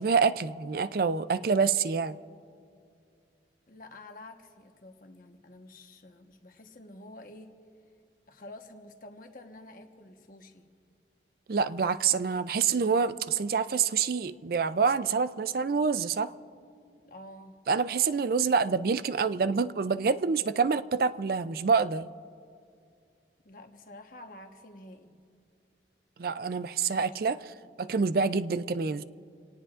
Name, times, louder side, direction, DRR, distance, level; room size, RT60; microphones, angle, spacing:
voice 1, 0.0-2.2 11.5-16.3 17.7-22.1 26.2-29.0, right 5 dB, 55° right, 14 dB, 0.4 m, -27 dB
voice 2, 3.7-7.5 8.3-10.7 17.0-17.6 23.4-25.2, left 1 dB, 50° left, 4 dB, 1.2 m, -49 dB
27.0 x 18.5 x 2.5 m, 2.3 s
head